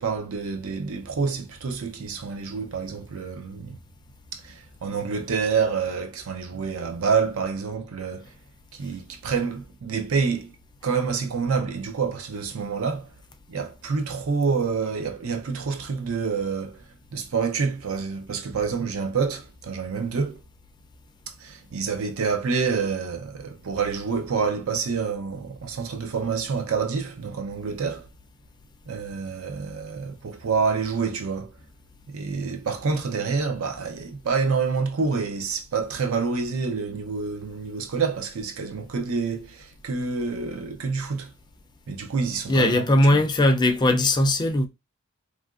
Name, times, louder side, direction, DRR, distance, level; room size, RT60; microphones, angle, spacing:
voice 1, 0.0-3.8 4.3-8.3 8.7-10.5 10.8-13.1 13.5-16.8 17.1-20.4 21.3-28.1 28.9-31.5 32.1-41.3 41.9-43.2, right 5 dB, 80° right, 0.5 m, -27 dB
voice 2, 42.5-44.7, left 1 dB, 20° left, 0.3 m, -19 dB
2.8 x 2.5 x 2.4 m
head